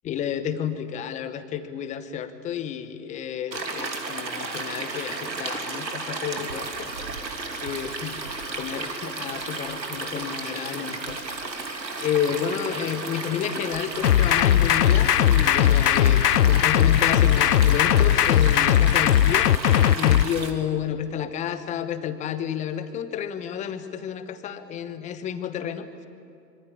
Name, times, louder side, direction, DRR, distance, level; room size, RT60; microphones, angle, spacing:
voice 1, 0.0-6.9 7.6-8.2 8.5-11.2 12.0-19.5 19.9-25.9, left 9 dB, 15° left, 10 dB, 1.1 m, -30 dB
Stream, 3.5-20.5, right 3 dB, 85° right, 3.2 m, -33 dB
sound 1, 14.0-20.2, left 11 dB, 70° left, 0.7 m, -18 dB
25.0 x 24.5 x 8.6 m, 2.5 s
hypercardioid pair, 125°, 50 cm